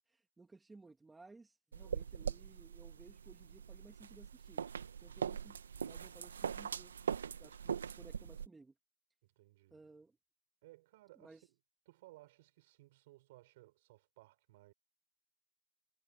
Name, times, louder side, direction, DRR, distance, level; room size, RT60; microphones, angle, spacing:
voice 1, 0.0-4.6 5.0-5.6 5.8-7.0 7.4-8.7 9.7-10.1 11.1-11.5, right 3 dB, ahead, 2.4 m, -59 dB
sound 1, 1.7-8.5, right 7 dB, 40° right, 2.1 m, -42 dB
voice 2, 9.2-9.8 10.6-11.6 11.9-14.7, right 18 dB, 20° right, 7.2 m, -61 dB
hypercardioid pair, 175°, 0 cm